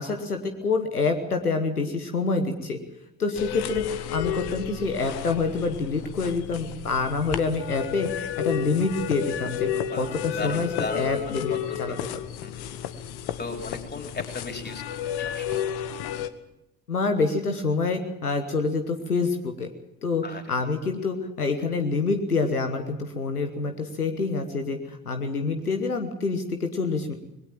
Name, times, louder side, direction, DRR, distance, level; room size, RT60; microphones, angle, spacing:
voice 1, 0.0-2.8 3.2-8.1 8.4-11.5 11.8-11.9 16.9-19.7 20.0-27.1, left 4 dB, 90° left, 6 dB, 1.2 m, -27 dB
sound 1, 3.4-16.3, left 10 dB, 60° left, 1.3 m, -32 dB
voice 2, 9.9-11.8 12.4-12.7 13.4-15.7 20.2-20.5, left 3 dB, 20° left, 3 dB, 4.2 m, -36 dB
20.5 x 17.5 x 7.4 m, 0.85 s
figure-of-eight pair, 50°, 44 cm